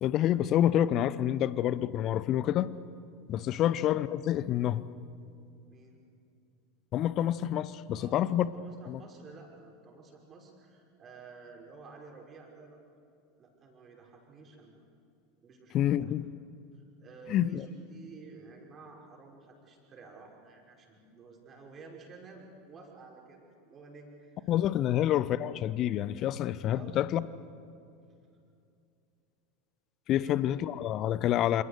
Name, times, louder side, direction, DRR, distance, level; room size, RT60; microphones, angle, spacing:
voice 1, 0.0-2.7 3.3-4.9 6.9-8.5 8.8-9.0 15.7-16.2 17.3-17.6 24.5-27.2 30.1-31.6, left 11 dB, 40° left, 17 dB, 0.9 m, -28 dB
voice 2, 5.7-6.0 8.0-12.8 13.4-14.9 15.4-16.1 16.7-25.0 26.7-27.0 30.1-30.4, right 4 dB, 30° right, 0 dB, 5.9 m, -52 dB
27.5 x 27.5 x 6.8 m, 2.5 s
figure-of-eight pair, 80°, 0 cm